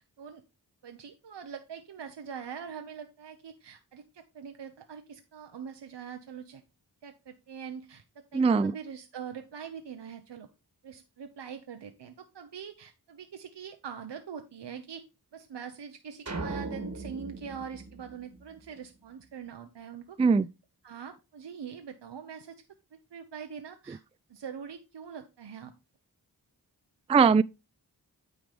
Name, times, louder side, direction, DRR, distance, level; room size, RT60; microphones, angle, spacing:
voice 1, 0.8-6.6 7.0-10.5 10.8-15.0 15.3-20.2 20.8-22.6 23.1-24.0 24.3-25.7, right 7 dB, 85° right, 0.8 m, -43 dB
voice 2, 8.3-8.7 20.2-20.5 27.1-27.4, right 5 dB, 15° right, 0.3 m, -20 dB
sound 1, 16.3-18.8, right 3 dB, 40° right, 1.6 m, -39 dB
9.3 x 4.0 x 5.0 m
cardioid pair, 45°, 41 cm